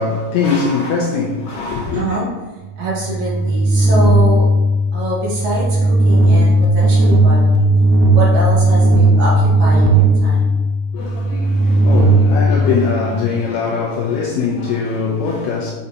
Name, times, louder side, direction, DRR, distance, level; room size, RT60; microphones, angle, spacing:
voice 1, 0.0-2.0 10.9-15.7, left 4 dB, 80° left, 1.6 m, -21 dB
voice 2, 1.9-2.3 2.8-4.5 4.9-7.7 8.1-10.6, equal, 60° right, 2.7 m, -24 dB
sound 1, 2.7-13.4, right 1 dB, 80° right, 2.2 m, -14 dB
6.5 x 5.6 x 2.8 m
omnidirectional pair, 3.8 m